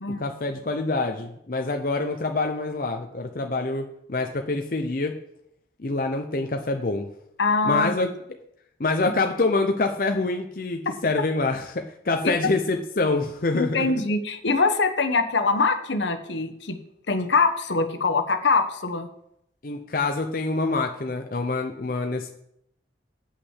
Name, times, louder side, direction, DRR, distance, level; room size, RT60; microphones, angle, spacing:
voice 1, 0.2-5.1 5.8-7.1 7.6-8.1 8.8-13.9 19.6-22.3, left 3 dB, 50° left, 4 dB, 0.7 m, -26 dB
voice 2, 7.4-7.9 13.5-16.8 17.1-19.1, left 4 dB, 75° left, 8 dB, 1.1 m, -23 dB
8.2 x 5.9 x 7.3 m, 0.74 s
head